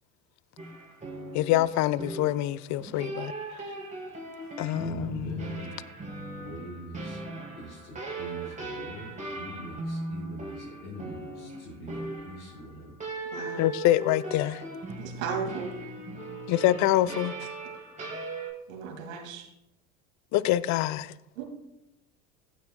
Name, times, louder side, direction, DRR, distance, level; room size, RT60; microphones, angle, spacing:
sound 1, 0.6-18.5, right 2 dB, 20° right, 3.7 m, -38 dB
voice 1, 1.3-3.3 4.6-5.5 13.5-14.6 16.5-17.3 20.3-21.1, left 14 dB, 45° left, 0.5 m, -25 dB
voice 2, 4.7-5.8 6.4-7.2 7.5-13.0, equal, 80° left, 4.3 m, -43 dB
voice 3, 13.3-13.7 15.0-15.7 18.7-19.5 21.4-21.5, right 6 dB, 70° right, 2.2 m, -35 dB
15.0 x 10.5 x 2.2 m
hypercardioid pair, 75°, 42 cm